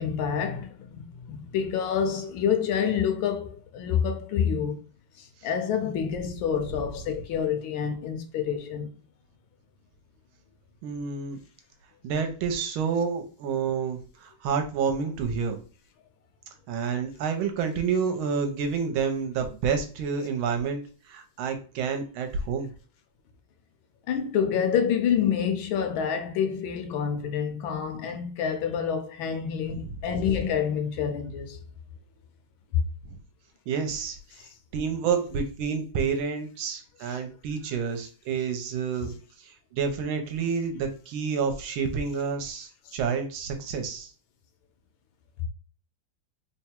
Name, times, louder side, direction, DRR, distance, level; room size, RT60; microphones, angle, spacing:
voice 1, 0.0-4.8 5.2-8.9 24.1-31.6 32.7-32.8 37.1-37.2 39.0-39.1 42.9-43.0, left 7 dB, 75° left, 1.3 m, -27 dB
voice 2, 10.8-11.4 12.0-15.6 16.7-20.8 21.1-22.7 33.7-34.2 34.7-39.1 39.4-44.1, right 6 dB, 80° right, 1.4 m, -29 dB
3.6 x 2.1 x 4.3 m
omnidirectional pair, 2.4 m